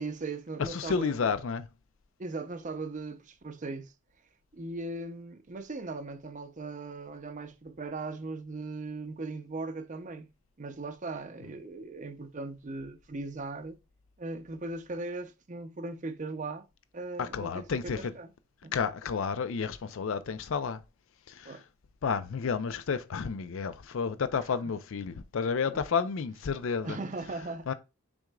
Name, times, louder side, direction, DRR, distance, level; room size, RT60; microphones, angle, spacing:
voice 1, 0.0-1.2 2.2-3.9 4.5-10.3 10.6-13.8 14.2-16.6 16.9-18.3 18.6-18.7 21.4-21.6 26.8-27.7, right 3 dB, 35° right, 0.6 m, -38 dB
voice 2, 0.6-1.7 17.2-18.1 18.7-20.8 21.3-21.6 22.0-27.0 27.7-27.8, left 5 dB, 70° left, 0.4 m, -31 dB
6.1 x 3.7 x 2.2 m
head